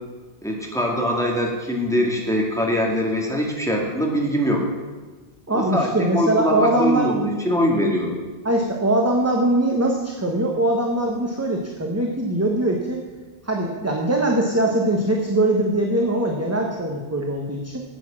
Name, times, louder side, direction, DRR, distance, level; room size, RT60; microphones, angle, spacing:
voice 1, 0.4-4.6 5.5-8.2, equal, 5° left, -2 dB, 1.9 m, -22 dB
voice 2, 5.5-7.1 8.4-13.0 13.4-17.8, right 1 dB, 15° right, 0 dB, 1.0 m, -21 dB
9.2 x 8.2 x 7.3 m, 1.3 s
omnidirectional pair, 1.1 m